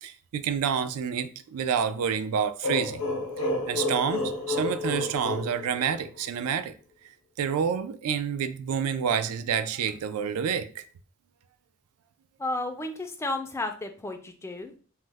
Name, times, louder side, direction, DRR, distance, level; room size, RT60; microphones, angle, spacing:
voice 1, 0.0-3.0 3.4-6.7 7.4-10.8, right 7 dB, 80° right, 0.3 m, -28 dB
sound 1, 2.6-6.3, left 2 dB, 70° left, 0.7 m, -30 dB
voice 2, 12.4-14.8, left 2 dB, 10° left, 0.3 m, -33 dB
3.0 x 2.1 x 3.3 m
head